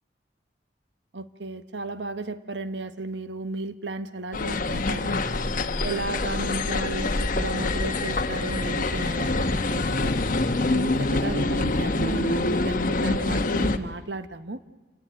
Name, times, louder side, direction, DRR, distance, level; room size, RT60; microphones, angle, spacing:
voice 1, 1.1-5.2 5.8-10.1 10.7-14.6, right 2 dB, 90° right, 11 dB, 1.3 m, -34 dB
sound 1, 4.3-13.8, left 2 dB, 50° left, 1.2 m, -25 dB
28.0 x 18.0 x 9.3 m, 1.2 s
head